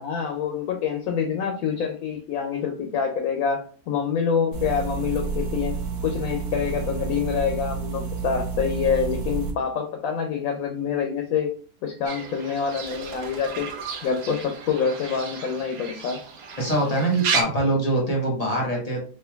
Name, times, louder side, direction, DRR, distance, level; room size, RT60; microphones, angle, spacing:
voice 1, 0.0-11.6 11.8-13.7 14.0-16.2, left 6 dB, 75° left, 4 dB, 1.0 m, -26 dB
sound 1, 4.5-9.5, right 5 dB, 75° right, 1.1 m, -30 dB
Fowl / Bird, 12.1-17.4, right 5 dB, 55° right, 0.8 m, -32 dB
voice 2, 16.6-19.0, right 1 dB, 30° left, -1 dB, 0.9 m, -23 dB
4.3 x 2.6 x 2.2 m, 0.42 s
omnidirectional pair, 1.5 m